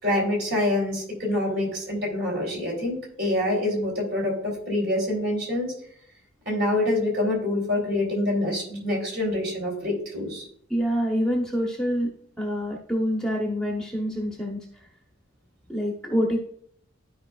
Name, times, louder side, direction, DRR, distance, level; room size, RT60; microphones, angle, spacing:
voice 1, 0.0-5.7 6.4-10.5, left 1 dB, 50° right, -1 dB, 3.0 m, -26 dB
voice 2, 10.7-12.1 12.4-14.7 15.7-16.4, equal, 5° left, -1 dB, 0.9 m, -26 dB
13.0 x 4.9 x 2.4 m, 0.65 s
head